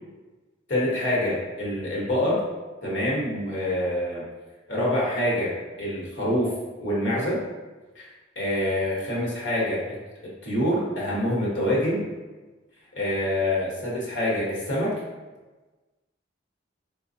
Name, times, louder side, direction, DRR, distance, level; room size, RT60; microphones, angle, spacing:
voice 1, 0.7-2.4 2.8-4.2 4.7-5.5 5.8-6.5 6.8-7.4 7.9-8.1 8.3-9.8 10.2-12.1 12.9-15.0, left 1 dB, 80° left, -5 dB, 1.1 m, -26 dB
4.0 x 2.3 x 2.6 m, 1.2 s
head